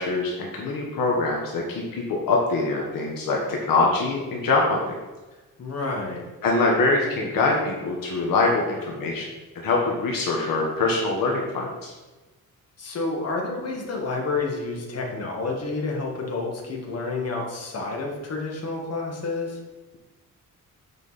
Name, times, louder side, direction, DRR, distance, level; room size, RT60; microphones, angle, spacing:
voice 1, 0.0-5.0 6.4-9.3 9.5-11.9, left 3 dB, 75° left, -1 dB, 1.4 m, -24 dB
voice 2, 5.6-6.2 12.8-19.6, left 3 dB, 45° left, -1 dB, 1.7 m, -29 dB
7.3 x 5.2 x 4.2 m, 1.2 s
cardioid pair, 120°, 34 cm